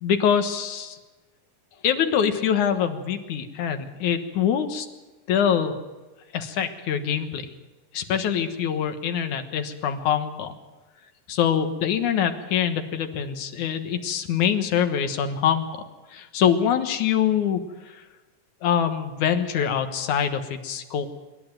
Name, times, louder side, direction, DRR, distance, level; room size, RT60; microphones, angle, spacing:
voice 1, 0.0-1.0 1.8-4.9 5.3-5.8 6.3-7.5 7.9-10.5 11.3-15.7 16.1-18.0 18.6-21.1, left 8 dB, 65° left, 7 dB, 2.6 m, -24 dB
26.0 x 11.5 x 9.2 m, 1.2 s
omnidirectional pair, 3.9 m